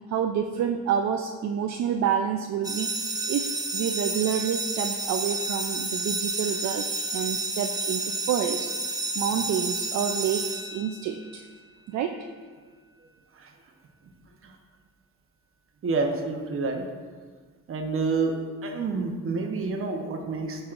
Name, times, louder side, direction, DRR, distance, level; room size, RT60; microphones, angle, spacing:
voice 1, 0.1-2.9 3.2-8.7 9.2-11.5 11.9-12.3, right 8 dB, 65° right, 4 dB, 0.5 m, -28 dB
sound 1, 2.6-11.3, right 2 dB, 10° right, 0.7 m, -30 dB
voice 2, 15.8-16.9 17.7-20.7, right 4 dB, 45° right, 3 dB, 1.0 m, -28 dB
9.5 x 5.5 x 2.5 m, 1.5 s
cardioid pair, 90°, 30 cm